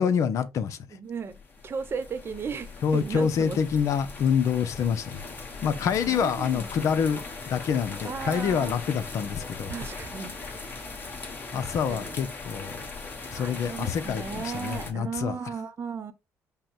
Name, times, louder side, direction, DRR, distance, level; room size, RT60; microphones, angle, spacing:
voice 1, 0.0-0.8 2.8-5.2 5.6-9.7 11.5-12.8 13.3-15.3, left 7 dB, 65° left, 0.7 m, -26 dB
voice 2, 0.9-3.6 6.0-7.0 8.0-8.8 9.7-10.3 10.6-10.8 11.5-12.2 13.3-16.1, right 6 dB, 45° right, 0.9 m, -36 dB
sound 1, 1.2-14.9, left 4 dB, 35° left, 1.5 m, -39 dB
5.4 x 2.2 x 4.3 m
supercardioid pair, 80°, 6 cm